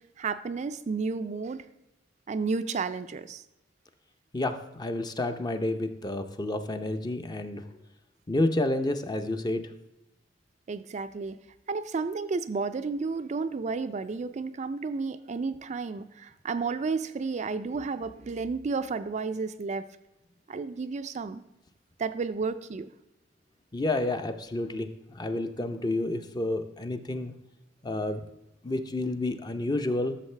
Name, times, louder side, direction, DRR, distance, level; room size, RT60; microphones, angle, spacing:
voice 1, 0.2-1.7 2.3-3.4 10.7-11.4 11.7-19.9 20.5-21.4 22.0-22.9, right 4 dB, 40° right, 10 dB, 0.4 m, -32 dB
voice 2, 4.3-7.6 8.3-9.6 23.7-27.3 27.8-28.2 28.6-30.2, left 2 dB, 20° left, 8 dB, 0.6 m, -30 dB
12.5 x 6.5 x 3.3 m, 0.93 s
head